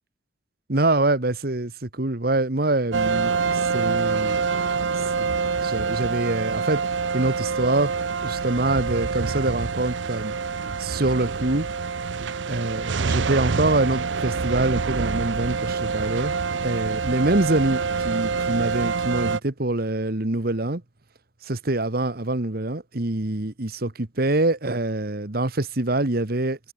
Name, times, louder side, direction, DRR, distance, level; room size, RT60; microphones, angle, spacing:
voice 1, 0.7-6.8 7.1-7.9 8.2-10.3 10.8-11.7 12.5-16.3 16.6-20.8 21.4-26.6, right 2 dB, 55° right, 1.6 m, -25 dB
sound 1, 2.9-19.4, right 5 dB, 90° right, 0.7 m, -26 dB
head